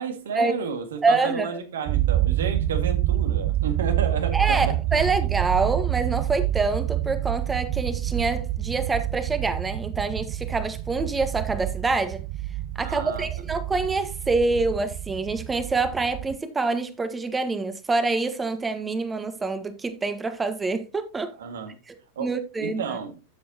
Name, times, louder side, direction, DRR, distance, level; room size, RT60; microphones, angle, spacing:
voice 1, 0.0-4.8 12.8-13.3 21.4-21.8 22.2-22.3 22.6-23.2, right 6 dB, 60° right, 1.9 m, -31 dB
voice 2, 1.0-1.5 4.3-12.2 12.8-21.3 21.9-22.0 22.2-23.0, right 3 dB, 15° right, 1.5 m, -26 dB
sound 1, 1.9-16.4, right 13 dB, 40° right, 0.7 m, -27 dB
11.5 x 7.7 x 2.9 m
figure-of-eight pair, 90°, 0 cm